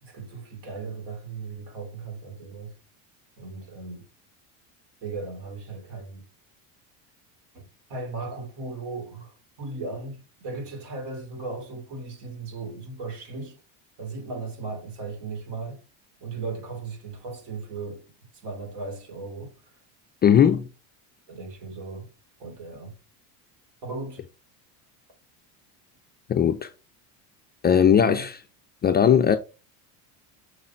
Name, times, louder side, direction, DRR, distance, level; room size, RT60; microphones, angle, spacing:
voice 1, 0.0-2.7 3.4-4.1 5.0-6.2 7.5-13.6 14.0-15.8 16.2-19.5 20.4-20.5 21.3-22.1 22.4-23.0 23.8-24.3 27.9-28.2, right 3 dB, 60° right, 3.1 m, -37 dB
voice 2, 20.2-20.7 26.3-26.7 27.6-28.4 28.8-29.4, left 8 dB, 25° left, 0.3 m, -18 dB
6.5 x 3.8 x 4.3 m
supercardioid pair, 115°, 45 cm